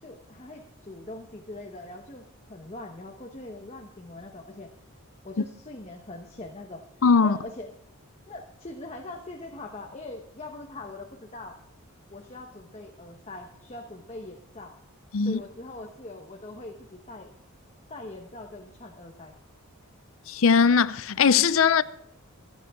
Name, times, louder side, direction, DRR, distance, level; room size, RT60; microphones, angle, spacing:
voice 1, 0.0-4.7 5.2-6.8 7.2-7.7 8.3-11.6 12.1-14.8 15.2-17.3 17.9-19.3, left 2 dB, 30° left, 1.1 m, -42 dB
voice 2, 7.0-7.4 15.1-15.4 20.3-21.8, left 5 dB, 65° left, 0.5 m, -20 dB
24.5 x 9.1 x 3.7 m
head